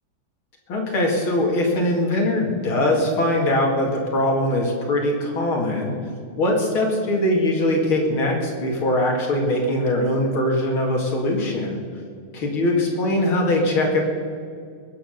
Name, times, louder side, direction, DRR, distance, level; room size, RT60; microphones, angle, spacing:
voice 1, 0.7-5.9 6.4-11.8 12.3-14.0, left 1 dB, 75° left, 0 dB, 3.0 m, -21 dB
21.0 x 8.8 x 6.5 m, 2.1 s
omnidirectional pair, 2.3 m